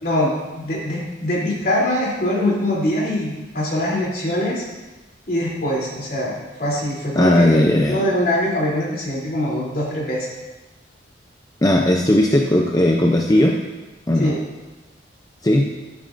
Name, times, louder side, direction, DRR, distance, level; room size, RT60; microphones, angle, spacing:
voice 1, 0.0-4.6 5.3-10.3 14.2-14.4, left 1 dB, 55° left, -5 dB, 3.2 m, -23 dB
voice 2, 7.2-8.0 11.6-13.6 14.1-14.3 15.4-15.7, left 1 dB, 20° left, 1 dB, 0.5 m, -17 dB
11.0 x 10.5 x 2.6 m, 1.1 s
head